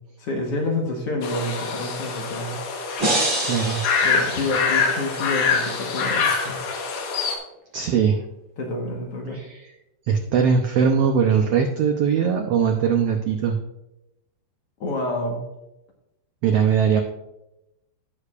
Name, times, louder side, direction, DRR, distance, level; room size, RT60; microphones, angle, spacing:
voice 1, 0.2-2.6 4.0-6.6 8.6-9.4 14.8-15.5, left 2 dB, 55° left, 0 dB, 1.9 m, -28 dB
sound 1, 1.2-7.4, left 5 dB, 75° left, 2.6 m, -25 dB
sound 2, 3.0-5.1, right 1 dB, 20° right, 1.3 m, -27 dB
voice 2, 3.4-3.8 7.7-8.2 9.3-9.6 10.1-13.5 16.4-17.0, right 7 dB, 80° right, 4 dB, 1.3 m, -20 dB
16.5 x 6.7 x 2.4 m, 0.90 s
omnidirectional pair, 3.7 m